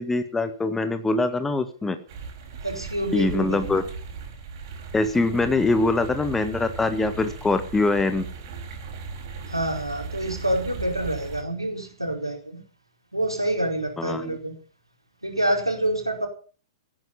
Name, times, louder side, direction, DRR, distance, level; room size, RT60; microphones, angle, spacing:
voice 1, 0.0-2.0 3.1-3.8 4.9-8.2 14.0-14.4, left 3 dB, 10° left, 10 dB, 1.5 m, -23 dB
sound 1, 2.1-11.4, right 5 dB, 45° right, 4.7 m, -38 dB
voice 2, 2.6-3.8 9.5-12.6 13.1-14.5 15.2-16.3, right 1 dB, 90° right, 2 dB, 4.4 m, -27 dB
16.0 x 9.6 x 7.1 m, 0.40 s
figure-of-eight pair, 105°, 2 cm